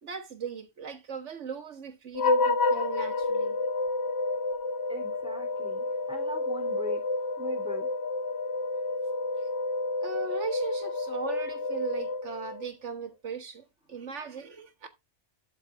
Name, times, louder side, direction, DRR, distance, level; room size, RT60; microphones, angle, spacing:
voice 1, 0.0-3.6 10.0-14.9, right 5 dB, 75° right, 1.7 m, -38 dB
sound 1, 2.1-12.7, left 3 dB, 60° left, 1.9 m, -30 dB
voice 2, 4.9-7.0 7.4-7.9, equal, 5° right, 3.2 m, -41 dB
12.5 x 4.7 x 3.8 m
omnidirectional pair, 1.2 m